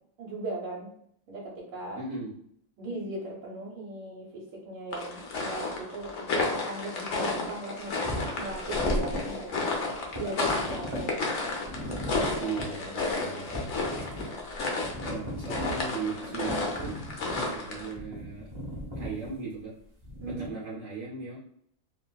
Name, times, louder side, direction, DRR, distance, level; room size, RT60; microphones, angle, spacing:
voice 1, 0.2-0.9 1.3-2.0 2.8-8.0 8.4-9.5 10.2-11.2 20.2-20.5, right 2 dB, 80° right, -3 dB, 1.5 m, -38 dB
voice 2, 2.0-2.3 12.4-14.3 15.1-17.0 17.3-18.5 18.9-19.7 20.3-21.4, right 4 dB, 60° right, -6 dB, 0.8 m, -38 dB
sound 1, 4.9-17.9, left 3 dB, 80° left, 0.6 m, -32 dB
sound 2, 8.0-9.3 9.6-9.7 10.0-11.1 11.6-12.7 13.0-13.1 13.5-14.3 14.6-15.8 16.5-17.5 17.9-19.4 20.0-20.5, equal, 40° right, 0.4 m, -36 dB
3.4 x 2.5 x 2.2 m, 0.67 s
omnidirectional pair, 2.1 m